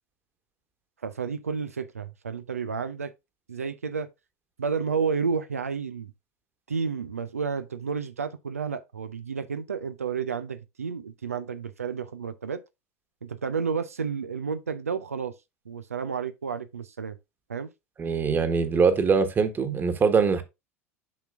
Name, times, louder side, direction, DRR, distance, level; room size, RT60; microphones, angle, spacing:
voice 1, 1.0-3.1 3.5-4.1 4.6-6.1 6.7-12.6 13.2-15.3 15.7-17.2 17.5-17.7, right 6 dB, 85° right, 0.6 m, -31 dB
voice 2, 18.0-20.4, right 5 dB, 25° right, 1.4 m, -22 dB
8.6 x 5.8 x 2.5 m
figure-of-eight pair, 80°, 8 cm